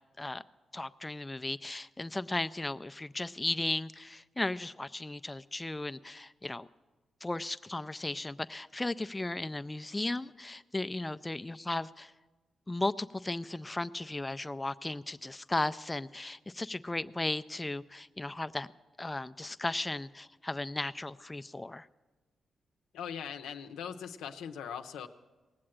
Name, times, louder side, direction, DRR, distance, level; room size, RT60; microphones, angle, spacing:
voice 1, 0.7-6.7 7.2-12.1 12.7-18.7 19.0-21.9, left 2 dB, 20° left, 12 dB, 0.4 m, -36 dB
voice 2, 22.9-25.1, left 8 dB, 90° left, 7 dB, 0.6 m, -40 dB
18.5 x 7.6 x 8.8 m, 1.2 s
supercardioid pair, 55°, 0 cm